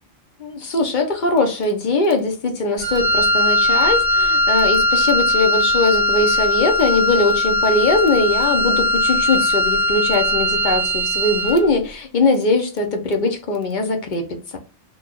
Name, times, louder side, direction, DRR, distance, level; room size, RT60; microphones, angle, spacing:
voice 1, 0.4-14.6, left 3 dB, 50° left, 0.7 m, -20 dB
Wind instrument woodwind instrument, 2.8-11.7, left 1 dB, 35° right, 0.5 m, -19 dB
3.0 x 2.3 x 3.7 m
omnidirectional pair, 1.2 m